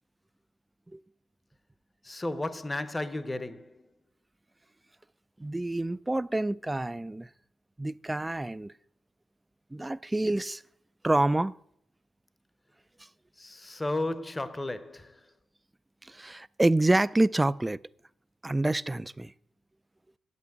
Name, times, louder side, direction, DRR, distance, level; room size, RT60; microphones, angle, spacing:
voice 1, 2.0-3.8 13.4-15.2, left 2 dB, 15° left, 0.8 m, -34 dB
voice 2, 5.4-7.3 7.8-8.7 9.7-10.6 11.0-11.5 16.0-17.8 18.4-19.3, right 2 dB, 10° right, 0.3 m, -27 dB
8.7 x 8.2 x 8.4 m
cardioid pair, 90°, 0 cm